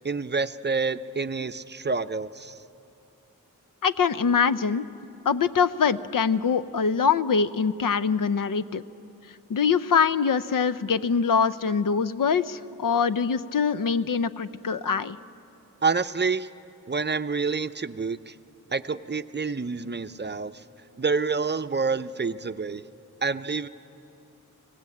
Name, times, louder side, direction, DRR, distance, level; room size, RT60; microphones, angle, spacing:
voice 1, 0.0-2.6 15.8-16.5 16.9-18.3 18.7-20.5 21.0-22.8 23.2-23.7, right 4 dB, 35° right, 11 dB, 0.6 m, -28 dB
voice 2, 3.8-4.9 5.3-8.8 9.5-15.2, left 6 dB, 75° left, 13 dB, 0.6 m, -23 dB
24.5 x 18.0 x 8.5 m, 2.7 s
wide cardioid pair, 70°, 33 cm